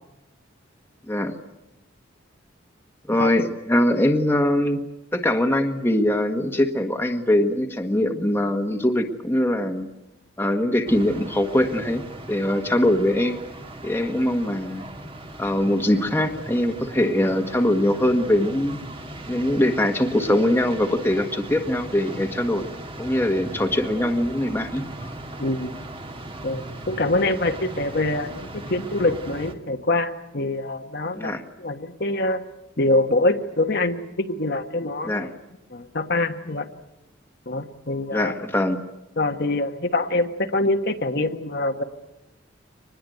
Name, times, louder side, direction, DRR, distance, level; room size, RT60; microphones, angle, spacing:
voice 1, 3.1-4.8 5.1-9.9 10.4-13.4 13.8-14.8 15.4-18.8 19.3-22.6 23.0-24.9 31.1-31.4 35.0-35.3 38.1-38.8, left 1 dB, 10° left, 4 dB, 1.5 m, -22 dB
sound 1, 10.9-29.5, right 1 dB, 25° right, 1.8 m, -38 dB
voice 2, 25.4-25.7 26.4-31.3 31.6-32.4 32.8-35.3 35.7-36.7 37.5-38.3 39.2-41.8, left 2 dB, 50° left, 5 dB, 1.3 m, -24 dB
24.5 x 20.5 x 9.3 m, 0.94 s
head